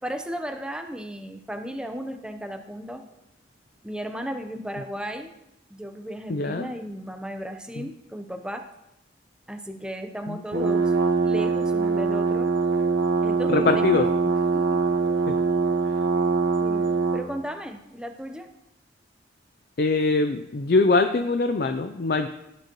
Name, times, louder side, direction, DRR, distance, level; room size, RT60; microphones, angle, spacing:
voice 1, 0.0-3.0 3.8-5.3 5.7-8.7 9.5-10.9 11.2-12.5 13.2-14.1 14.5-14.8 16.6-16.9 17.1-18.5, equal, 5° right, 5 dB, 0.8 m, -35 dB
voice 2, 6.3-6.7 7.8-7.9 10.3-10.4 13.5-14.1 15.3-15.4 19.8-22.3, left 3 dB, 55° left, 8 dB, 0.5 m, -22 dB
sound 1, 10.5-17.3, right 4 dB, 75° right, 1.3 m, -23 dB
16.5 x 10.5 x 3.0 m, 0.88 s
head